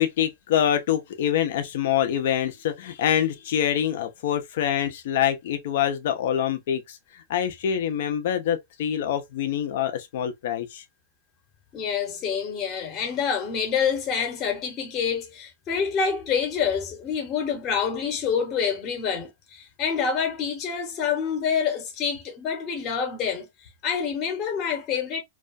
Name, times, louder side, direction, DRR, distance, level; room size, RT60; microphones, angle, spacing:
voice 1, 0.0-7.0 7.3-10.8, left 10 dB, 65° left, 0.5 m, -25 dB
voice 2, 11.7-23.5 23.8-25.2, left 6 dB, 35° left, 0.8 m, -27 dB
2.3 x 2.2 x 2.5 m
hypercardioid pair, 130°, 0 cm